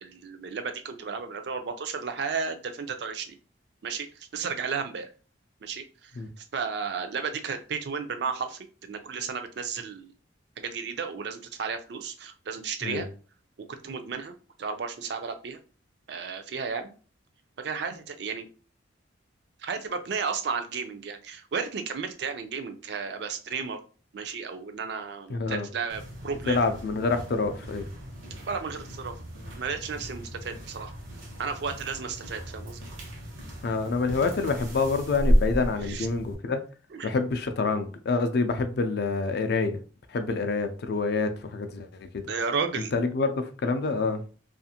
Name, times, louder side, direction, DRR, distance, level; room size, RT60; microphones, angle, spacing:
voice 1, 0.0-3.4 3.8-5.1 5.6-6.1 6.4-10.1 10.6-13.1 13.7-15.6 16.1-16.9 17.6-18.5 19.6-23.8 24.1-26.6 28.5-29.1 29.6-30.9 31.4-32.8 35.9-36.1 36.9-37.1 42.3-42.9, right 5 dB, 60° right, 0.4 m, -33 dB
voice 2, 25.3-25.7 26.5-27.9 33.6-36.6 37.0-39.8 40.1-42.3 42.9-44.2, left 4 dB, 55° left, 0.4 m, -27 dB
sound 1, 25.9-36.3, equal, 85° right, 0.9 m, -33 dB
2.4 x 2.4 x 2.8 m
head